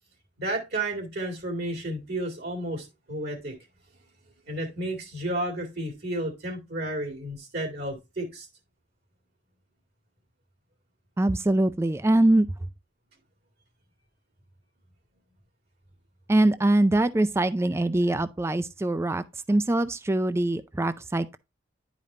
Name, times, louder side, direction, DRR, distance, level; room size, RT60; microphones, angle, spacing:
voice 1, 0.4-3.6 4.5-8.5, right 1 dB, 55° right, 2.1 m, -32 dB
voice 2, 11.2-12.5 16.3-21.4, right 1 dB, 15° right, 0.3 m, -23 dB
11.0 x 5.1 x 2.6 m
head